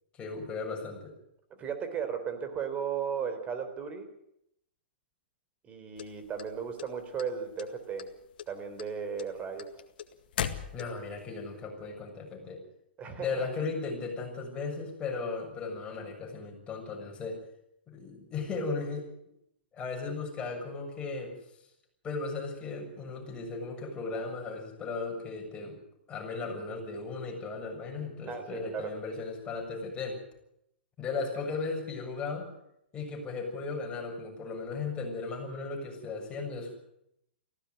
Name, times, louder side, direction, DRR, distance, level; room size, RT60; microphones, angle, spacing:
voice 1, 0.1-1.1 10.7-12.6 13.2-17.4 17.9-19.1 19.7-21.3 22.0-25.8 26.1-30.2 31.0-32.5 32.9-36.7, left 4 dB, 20° left, 1 dB, 7.0 m, -36 dB
voice 2, 1.6-4.1 5.6-8.1 8.5-9.7 13.0-13.5 28.3-28.9, right 7 dB, 25° right, 7 dB, 3.9 m, -35 dB
sound 1, 6.0-7.2 7.6-8.1 8.4-11.2, left 9 dB, 60° left, 2.0 m, -37 dB
18.5 x 16.0 x 9.2 m, 0.77 s
hypercardioid pair, 120°, 6 cm